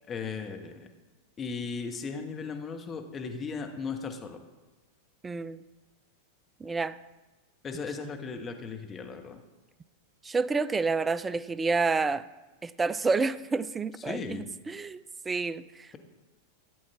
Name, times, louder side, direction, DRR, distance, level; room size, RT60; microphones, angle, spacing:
voice 1, 0.1-0.9 1.4-4.4 7.6-9.4 14.0-14.5, left 5 dB, 25° left, 1.3 m, -36 dB
voice 2, 5.2-5.6 6.6-7.0 10.2-12.2 12.6-14.2 14.7-16.0, right 4 dB, 15° right, 0.4 m, -29 dB
15.5 x 8.4 x 3.6 m
figure-of-eight pair, 90°, 0 cm